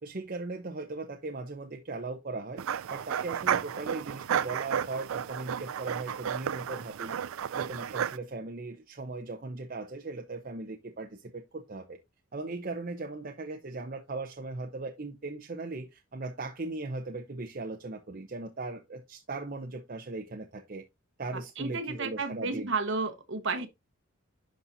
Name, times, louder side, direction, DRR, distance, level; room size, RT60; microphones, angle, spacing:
voice 1, 0.0-2.6 2.9-7.1 7.5-12.0 12.3-20.8 21.2-22.7, right 3 dB, 40° right, 0.7 m, -38 dB
sound 1, 2.6-8.2, right 8 dB, 75° right, 0.4 m, -32 dB
voice 2, 21.3-23.7, right 4 dB, 60° right, 1.1 m, -32 dB
11.5 x 4.1 x 2.6 m
head